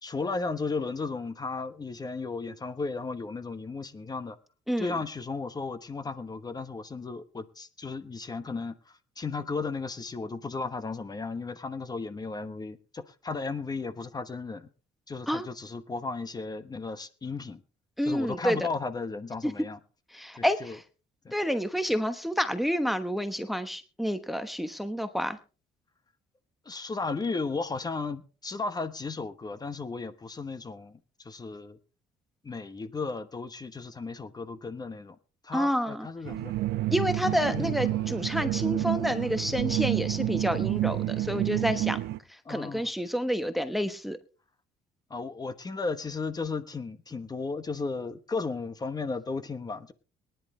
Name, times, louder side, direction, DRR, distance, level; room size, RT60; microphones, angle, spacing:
voice 1, 0.0-4.4 4.8-14.7 15.1-17.6 18.0-19.8 20.4-20.8 21.2-21.4 26.6-31.8 32.4-35.2 35.4-36.5 37.2-38.2 38.8-39.0 42.4-42.9 45.1-49.9, left 4 dB, 25° left, 1.2 m, -35 dB
voice 2, 18.0-18.6 19.4-19.5 20.1-20.8 21.3-25.4 35.5-36.1 36.9-42.0 42.5-44.2, equal, ahead, 1.1 m, -29 dB
sound 1, 36.2-42.2, right 16 dB, 80° right, 0.8 m, -29 dB
23.0 x 10.5 x 3.2 m
cardioid pair, 110°, 17 cm